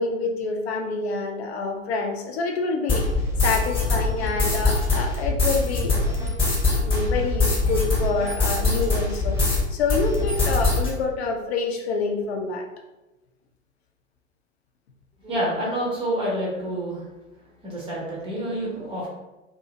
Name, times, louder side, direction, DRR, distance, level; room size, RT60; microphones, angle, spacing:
voice 1, 0.0-3.1 3.4-6.2 6.7-12.7, left 3 dB, 55° left, 2 dB, 0.6 m, -27 dB
sound 1, 2.9-9.6 9.9-10.9, left 3 dB, 15° left, 1.1 m, -22 dB
voice 2, 15.2-17.0 17.6-19.1, right 1 dB, 15° right, -5 dB, 0.7 m, -28 dB
2.7 x 2.6 x 2.7 m, 1.1 s
figure-of-eight pair, 100°, 39 cm